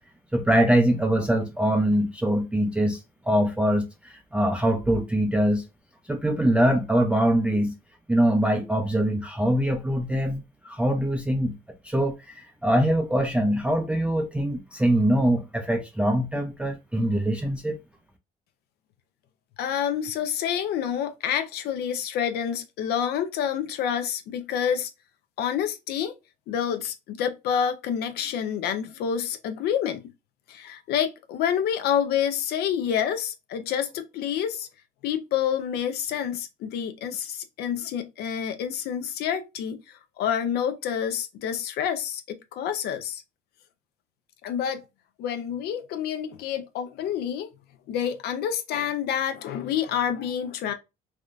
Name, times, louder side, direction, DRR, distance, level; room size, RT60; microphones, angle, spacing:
voice 1, 0.3-5.6 6.1-7.7 8.1-11.6 11.8-17.8, right 1 dB, 5° right, 0.4 m, -23 dB
voice 2, 19.6-24.9 25.4-26.1 26.5-30.0 30.5-34.7 35.0-43.2 44.4-44.8 45.2-47.5 47.9-50.7, left 8 dB, 75° left, 0.5 m, -28 dB
3.5 x 2.2 x 2.4 m
cardioid pair, 110°, 17 cm